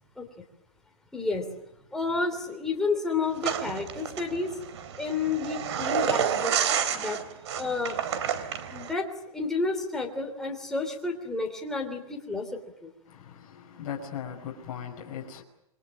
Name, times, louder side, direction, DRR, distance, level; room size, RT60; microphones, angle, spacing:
voice 1, 1.1-1.4 1.9-4.6 5.0-6.6 6.9-7.2 7.6-8.0 8.7-9.1 9.3-12.9, left 4 dB, ahead, 3.2 m, -30 dB
sound 1, 3.4-8.9, right 8 dB, 50° right, 3.3 m, -30 dB
voice 2, 13.1-15.4, left 8 dB, 30° left, 5.5 m, -38 dB
27.5 x 23.5 x 7.7 m
hypercardioid pair, 160°, 18 cm